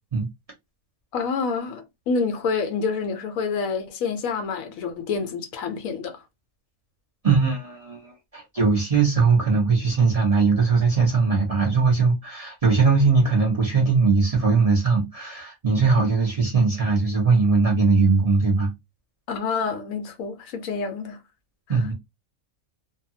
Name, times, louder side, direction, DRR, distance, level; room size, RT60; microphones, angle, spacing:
voice 1, 1.1-6.2 19.3-21.2 21.7-21.8, left 5 dB, 75° left, 1.0 m, -28 dB
voice 2, 7.2-18.7 21.7-21.9, right 4 dB, 35° right, 0.7 m, -20 dB
2.7 x 2.2 x 2.6 m
omnidirectional pair, 1.6 m